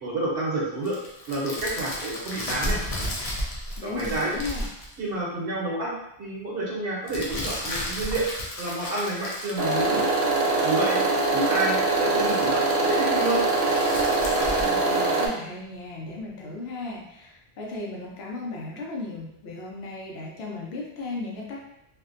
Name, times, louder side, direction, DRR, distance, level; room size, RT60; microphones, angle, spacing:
voice 1, 0.0-1.0 1.3-2.8 3.8-4.3 5.0-5.9 6.2-8.3 8.6-10.0 10.6-11.0 11.3-13.4, right 2 dB, 65° right, -4 dB, 0.9 m, -29 dB
sound 1, 0.8-4.9 7.1-10.3 13.3-14.7, left 1 dB, 50° left, 0.4 m, -33 dB
voice 2, 3.8-4.7 14.6-21.6, left 2 dB, 75° left, -2 dB, 0.8 m, -36 dB
sound 2, 9.6-15.3, right 3 dB, 90° right, 0.9 m, -23 dB
2.5 x 2.1 x 2.5 m, 0.81 s
omnidirectional pair, 1.1 m